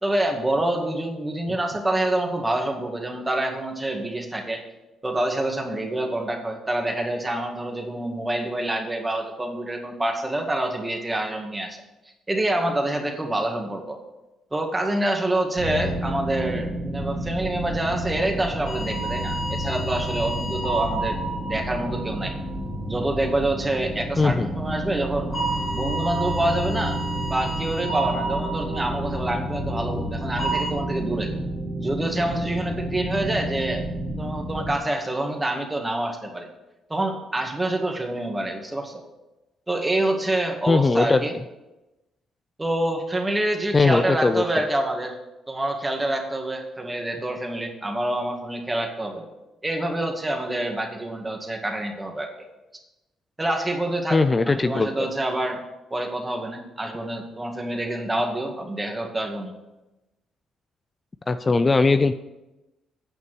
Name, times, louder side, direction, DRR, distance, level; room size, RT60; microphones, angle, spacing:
voice 1, 0.0-4.6 5.0-11.8 12.3-14.0 14.5-21.2 21.5-22.3 22.9-25.3 25.7-27.0 27.3-31.3 31.8-33.8 34.2-36.5 36.9-39.0 39.7-41.3 42.6-45.2 45.5-49.2 49.6-52.3 53.4-54.2 54.5-55.6 55.9-59.5, right 1 dB, 15° right, 2 dB, 2.0 m, -27 dB
sound 1, 15.5-34.7, equal, 55° right, 3.1 m, -30 dB
sound 2, 18.7-23.1 25.3-29.6 30.4-30.7, right 3 dB, 45° left, 2.1 m, -31 dB
voice 2, 24.2-24.5 40.7-41.2 43.7-44.6 54.1-55.1 61.3-62.1, left 3 dB, 25° left, 11 dB, 0.4 m, -20 dB
9.4 x 5.8 x 7.7 m, 1.0 s
cardioid pair, 90°, 0 cm